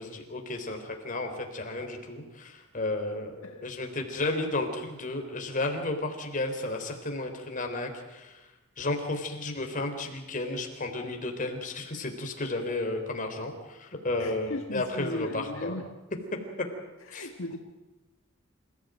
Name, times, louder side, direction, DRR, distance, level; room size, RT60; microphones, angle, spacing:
voice 1, 0.0-8.5 8.8-15.8 16.6-16.7 17.1-17.3, left 2 dB, 40° left, 4 dB, 3.7 m, -33 dB
voice 2, 14.2-15.9 17.0-17.6, left 1 dB, 75° left, 4 dB, 1.8 m, -37 dB
27.5 x 15.5 x 9.1 m, 1.1 s
head